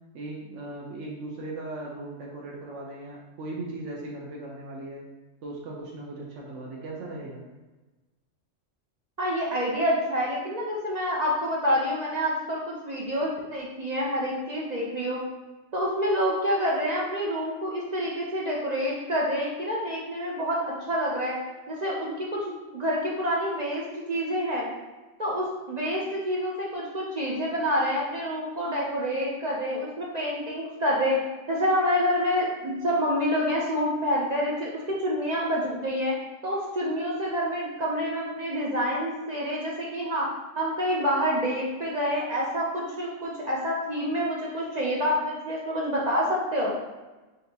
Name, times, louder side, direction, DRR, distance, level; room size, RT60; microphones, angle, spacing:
voice 1, 0.1-5.0 5.4-7.4, right 2 dB, 75° right, -2 dB, 1.0 m, -38 dB
voice 2, 9.2-15.2 15.7-21.3 21.7-23.8 24.1-24.7 25.2-31.2 31.5-36.1 36.4-40.3 40.6-46.8, equal, 50° right, -4 dB, 0.5 m, -27 dB
5.2 x 2.8 x 2.7 m, 1.2 s
omnidirectional pair, 1.3 m